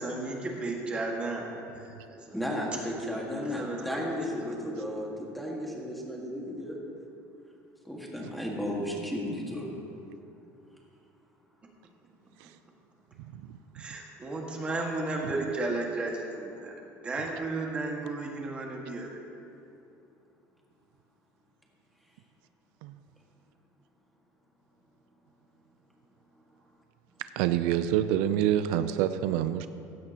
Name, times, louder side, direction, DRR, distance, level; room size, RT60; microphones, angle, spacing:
voice 1, 0.0-1.5 1.7-2.4 3.5-4.1 13.7-19.2, right 2 dB, 20° right, -1 dB, 1.8 m, -34 dB
voice 2, 2.3-6.8 7.9-9.7, equal, ahead, -3 dB, 1.8 m, -34 dB
voice 3, 13.2-13.6 22.8-22.9 27.4-29.7, right 11 dB, 85° right, 11 dB, 0.5 m, -27 dB
16.0 x 15.5 x 2.9 m, 2.7 s
cardioid pair, 170°, 6 cm